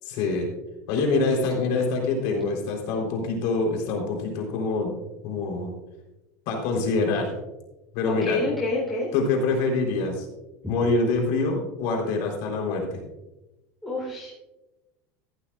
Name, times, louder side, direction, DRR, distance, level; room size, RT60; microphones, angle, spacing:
voice 1, 0.0-0.5 0.9-4.9 5.2-5.7 6.5-7.3 7.9-8.5 9.1-10.3 10.7-13.0, left 3 dB, 55° left, 1 dB, 3.8 m, -25 dB
voice 2, 8.1-9.1 10.6-10.7 13.8-14.3, left 2 dB, ahead, -7 dB, 3.8 m, -28 dB
14.0 x 12.5 x 2.5 m, 1.0 s
supercardioid pair, 160°, 8 cm